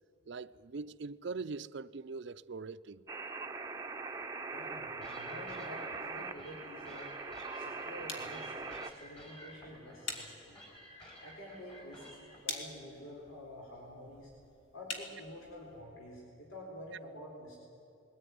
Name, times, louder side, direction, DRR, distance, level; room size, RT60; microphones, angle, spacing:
voice 1, 0.3-3.0, right 4 dB, 60° right, 0.5 m, -42 dB
sound 1, 3.1-8.9, right 4 dB, 15° right, 0.7 m, -42 dB
voice 2, 4.5-7.2 7.5-10.6 11.2-14.3 14.7-17.6, equal, 80° left, 4.0 m, -49 dB
sound 2, 5.0-12.4, equal, 30° left, 4.9 m, -53 dB
sound 3, 6.0-15.8, left 3 dB, 65° left, 2.7 m, -48 dB
21.5 x 16.0 x 9.5 m
head